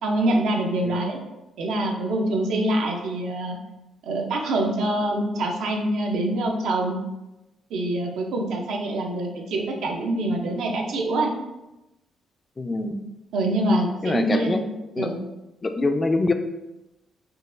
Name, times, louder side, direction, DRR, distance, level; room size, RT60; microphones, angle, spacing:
voice 1, 0.0-1.2 1.6-3.6 4.0-7.0 7.7-11.3 13.3-14.7 15.0-15.2, right 1 dB, 80° right, 1 dB, 0.5 m, -25 dB
voice 2, 12.6-13.0 14.0-14.6 15.0-15.1 15.6-16.3, left 2 dB, 30° left, 7 dB, 0.3 m, -24 dB
3.8 x 2.3 x 2.5 m, 0.98 s
cardioid pair, 90°, 0 cm